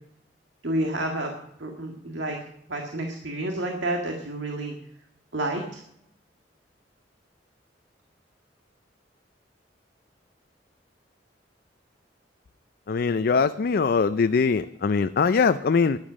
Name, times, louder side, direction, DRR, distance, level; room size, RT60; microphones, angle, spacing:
voice 1, 0.6-1.3 1.6-2.4 2.7-4.7 5.3-5.8, right 1 dB, 75° right, 2 dB, 1.8 m, -29 dB
voice 2, 12.9-16.0, left 5 dB, 55° left, 11 dB, 0.4 m, -22 dB
12.5 x 10.5 x 6.3 m, 0.74 s
head